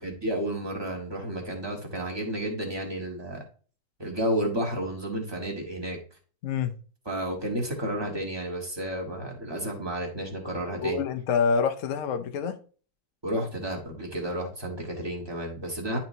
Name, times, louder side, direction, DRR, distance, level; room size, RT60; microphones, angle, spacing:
voice 1, 0.0-3.4 4.0-6.0 7.0-11.0 13.2-16.0, right 1 dB, 15° right, 1.2 m, -31 dB
voice 2, 6.4-6.8 10.8-12.6, left 6 dB, 75° left, 0.7 m, -26 dB
10.5 x 4.3 x 2.7 m
omnidirectional pair, 2.3 m